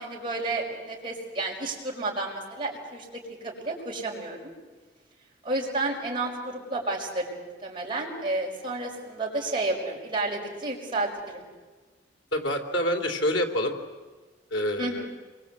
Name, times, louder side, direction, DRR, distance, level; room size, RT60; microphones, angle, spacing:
voice 1, 0.0-3.1 3.4-4.5 5.4-11.5 14.8-15.1, right 2 dB, 25° right, -2 dB, 5.5 m, -31 dB
voice 2, 12.3-13.7 14.5-15.1, equal, 85° left, 3 dB, 2.9 m, -27 dB
27.5 x 23.5 x 8.4 m, 1.3 s
head